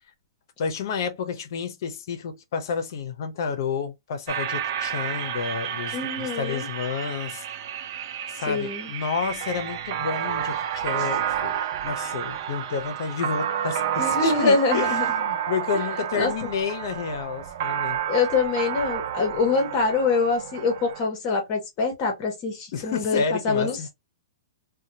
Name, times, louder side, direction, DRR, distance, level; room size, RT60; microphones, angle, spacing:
voice 1, 0.6-7.4 8.3-18.0 22.7-23.9, left 6 dB, 55° left, 0.7 m, -30 dB
sound 1, 4.3-21.0, right 9 dB, 50° right, 0.5 m, -30 dB
voice 2, 5.9-6.7 8.5-8.9 14.0-15.1 16.1-16.5 18.1-23.9, left 4 dB, 30° left, 1.1 m, -24 dB
2.8 x 2.2 x 2.7 m
hypercardioid pair, 155°, 2 cm